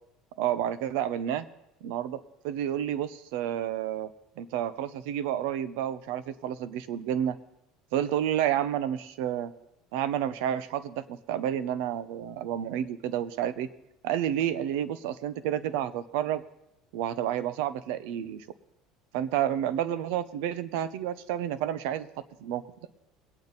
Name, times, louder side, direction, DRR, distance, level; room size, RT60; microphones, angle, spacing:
voice 1, 0.4-1.5 1.8-2.2 2.4-4.1 4.4-7.4 7.9-9.5 9.9-13.7 14.0-16.4 16.9-18.4 19.1-22.1 22.4-22.6, right 10 dB, 80° right, 15 dB, 0.7 m, -30 dB
22.5 x 8.8 x 4.0 m, 0.83 s
cardioid pair, 150°, 0 cm